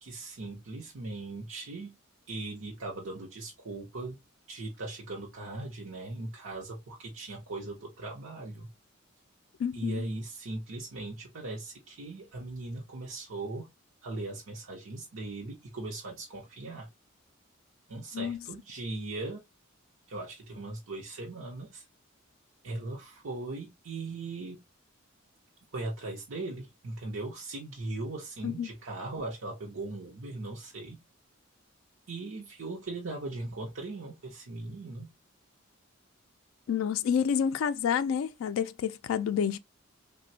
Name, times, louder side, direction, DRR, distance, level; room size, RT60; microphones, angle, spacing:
voice 1, 0.0-1.9 2.3-4.2 4.5-8.7 9.7-13.7 14.0-16.9 17.9-19.4 20.1-21.9 22.6-24.6 25.7-31.0 32.1-35.1, right 2 dB, 75° right, 0.7 m, -39 dB
voice 2, 9.6-10.0 18.1-18.4 28.4-28.7 36.7-39.6, left 7 dB, 75° left, 0.3 m, -29 dB
3.2 x 2.1 x 2.6 m
head